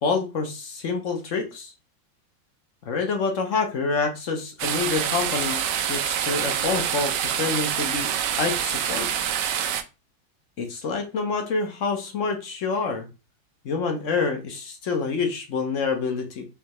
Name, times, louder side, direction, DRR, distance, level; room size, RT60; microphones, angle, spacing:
voice 1, 0.0-1.7 2.9-5.6 5.9-9.1 10.6-13.1 13.6-16.5, left 4 dB, 60° left, 4 dB, 0.8 m, -27 dB
sound 1, 4.6-9.8, right 9 dB, 75° right, 1.1 m, -26 dB
5.4 x 2.8 x 3.0 m, 0.30 s
omnidirectional pair, 2.2 m